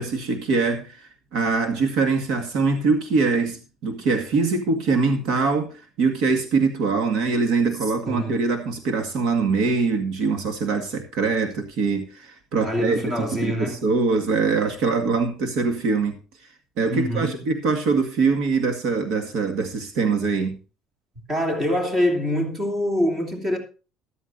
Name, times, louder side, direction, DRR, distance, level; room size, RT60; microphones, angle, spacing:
voice 1, 0.0-16.2 16.8-20.6, right 4 dB, 65° right, 2.0 m, -23 dB
voice 2, 8.1-8.4 12.6-13.8 16.9-17.4 21.3-23.6, equal, 25° right, 3.1 m, -24 dB
14.0 x 12.5 x 2.6 m
cardioid pair, 160°, 0 cm